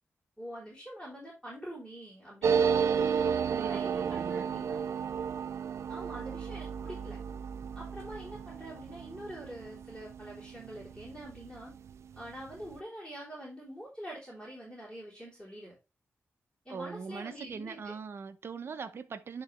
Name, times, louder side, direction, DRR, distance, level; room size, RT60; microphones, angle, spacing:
voice 1, 0.4-2.8 3.6-4.8 5.9-7.2 7.8-11.7 12.2-15.7 16.6-17.9, equal, 10° left, 3.8 m, -45 dB
sound 1, 2.4-11.6 11.9-12.0 12.2-12.7, right 7 dB, 75° right, 0.3 m, -32 dB
voice 2, 3.5-4.5 16.7-19.4, right 5 dB, 55° right, 0.9 m, -41 dB
10.5 x 4.0 x 3.3 m
wide cardioid pair, 115°, 5 cm